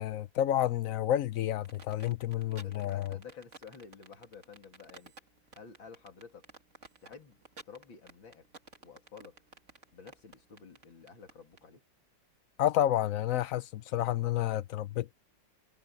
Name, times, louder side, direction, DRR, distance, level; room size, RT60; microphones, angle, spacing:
voice 1, 0.0-3.2 12.6-15.1, left 12 dB, 65° left, 0.8 m, -30 dB
sound 1, 1.6-11.6, right 3 dB, 40° right, 2.6 m, -53 dB
voice 2, 2.6-5.1 5.5-6.5 7.0-8.5 8.8-9.4 9.9-11.8, left 6 dB, 85° left, 3.6 m, -51 dB
omnidirectional pair, 2.1 m